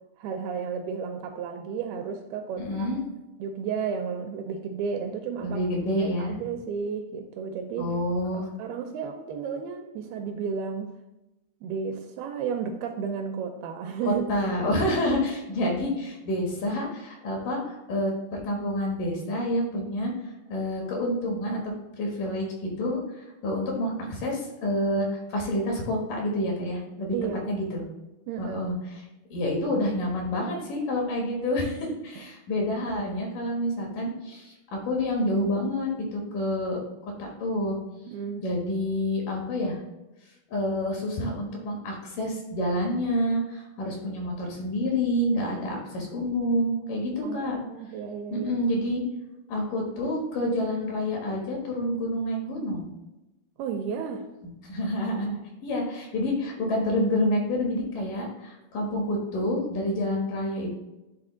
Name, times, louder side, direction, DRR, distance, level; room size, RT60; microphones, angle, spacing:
voice 1, 0.2-3.0 3.4-5.6 6.0-7.9 8.3-10.9 11.6-14.3 27.1-27.6 28.3-28.6 38.1-38.5 46.0-46.1 47.2-48.6 53.6-54.2, right 6 dB, 80° right, 5 dB, 2.3 m, -33 dB
voice 2, 2.6-3.0 5.4-6.4 7.8-8.5 14.1-27.1 27.5-27.9 28.4-28.8 29.3-34.5 34.8-37.8 38.4-39.8 40.5-47.6 48.3-49.0 49.5-52.9 54.4-60.7, left 1 dB, 65° left, 0 dB, 2.5 m, -28 dB
11.0 x 3.7 x 3.8 m, 0.99 s
omnidirectional pair, 4.8 m